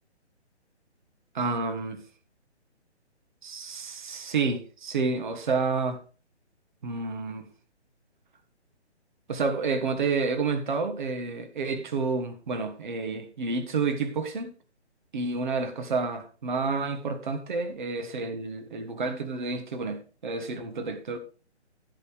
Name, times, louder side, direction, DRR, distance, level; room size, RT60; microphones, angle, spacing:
voice 1, 1.3-2.0 3.4-6.0 6.8-7.5 9.3-14.5 15.1-21.2, right 4 dB, 45° right, 1.5 m, -29 dB
13.5 x 8.4 x 3.5 m
figure-of-eight pair, 140°, 35 cm